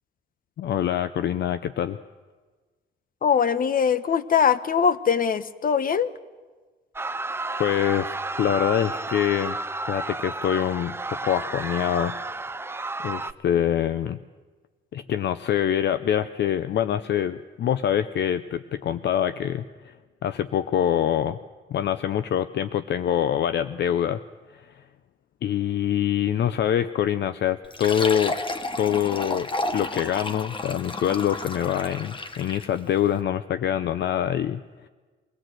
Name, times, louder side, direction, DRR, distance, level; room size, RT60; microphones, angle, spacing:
voice 1, 0.6-2.0 7.6-9.6 9.9-12.1 13.0-14.2 14.9-19.9 20.2-21.4 21.7-24.2 24.5-24.8 25.4-28.3 28.8-34.6, left 10 dB, 60° left, 12 dB, 0.6 m, -25 dB
voice 2, 3.2-6.1, left 7 dB, 45° left, 14 dB, 1.0 m, -22 dB
sound 1, 7.0-13.3, right 2 dB, 10° right, 0.6 m, -32 dB
Fill (with liquid), 27.6-32.8, left 2 dB, 25° left, 1.3 m, -32 dB
24.0 x 17.0 x 7.7 m, 1.4 s
cardioid pair, 90°, 20 cm